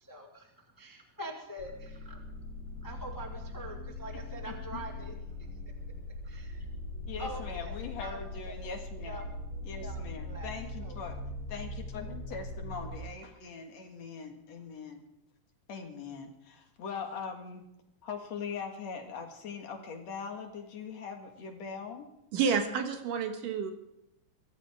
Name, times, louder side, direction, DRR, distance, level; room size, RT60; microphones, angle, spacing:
voice 1, 0.0-2.2 2.8-5.1 6.2-6.6 7.2-8.7 9.1-9.2 9.8-10.6 10.8-10.9, right 1 dB, 20° left, 0.5 m, -44 dB
sound 1, 1.6-13.0, left 2 dB, 75° left, 4.6 m, -41 dB
voice 2, 4.5-4.8 7.1-9.2 9.6-11.2 11.5-15.0 15.7-17.6 18.0-22.1, left 5 dB, 60° left, 2.8 m, -41 dB
voice 3, 22.3-23.7, right 6 dB, 80° right, 3.1 m, -29 dB
23.5 x 15.0 x 3.6 m
omnidirectional pair, 3.7 m